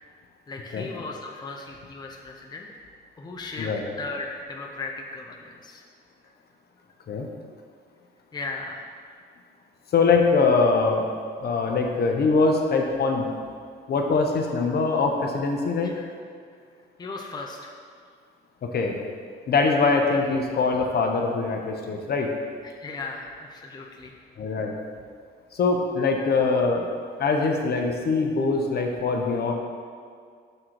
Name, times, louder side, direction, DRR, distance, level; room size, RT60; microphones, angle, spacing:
voice 1, 0.5-2.7 3.2-5.8 8.3-8.9 15.8-16.1 17.0-17.7 22.6-24.1 26.2-26.3, left 3 dB, 20° left, 0 dB, 0.6 m, -37 dB
voice 2, 9.9-11.1 11.4-13.3 13.9-16.0 18.6-19.0 19.5-22.3 24.4-24.8 25.5-26.9 27.2-29.5, left 4 dB, 55° left, 2 dB, 0.8 m, -23 dB
6.6 x 3.7 x 4.5 m, 2.1 s
cardioid pair, 90°, 20 cm